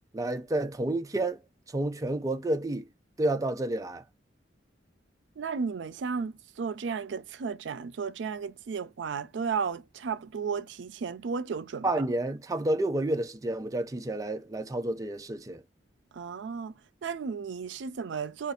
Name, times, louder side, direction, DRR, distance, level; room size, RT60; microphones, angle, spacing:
voice 1, 0.1-1.4 1.7-2.8 3.2-4.0 11.8-15.6, right 1 dB, 20° right, 0.4 m, -30 dB
voice 2, 5.4-11.9 16.1-18.5, right 5 dB, 85° right, 0.4 m, -34 dB
2.5 x 2.4 x 4.1 m
head